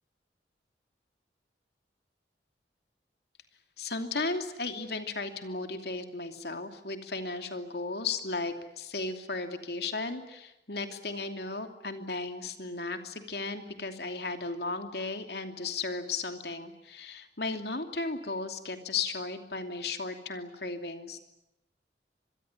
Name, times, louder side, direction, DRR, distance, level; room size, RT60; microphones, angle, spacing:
voice 1, 3.8-21.2, left 3 dB, 65° left, 6 dB, 2.8 m, -35 dB
25.5 x 22.0 x 9.7 m, 0.90 s
head